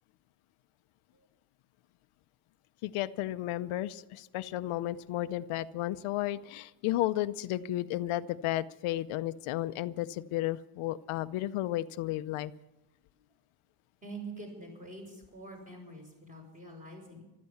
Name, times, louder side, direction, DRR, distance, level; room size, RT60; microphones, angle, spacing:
voice 1, 2.8-12.5, left 14 dB, 80° left, 13 dB, 0.7 m, -33 dB
voice 2, 14.0-17.2, right 2 dB, 15° right, 1 dB, 6.2 m, -45 dB
15.0 x 13.0 x 7.1 m, 1.0 s
cardioid pair, 135°, 49 cm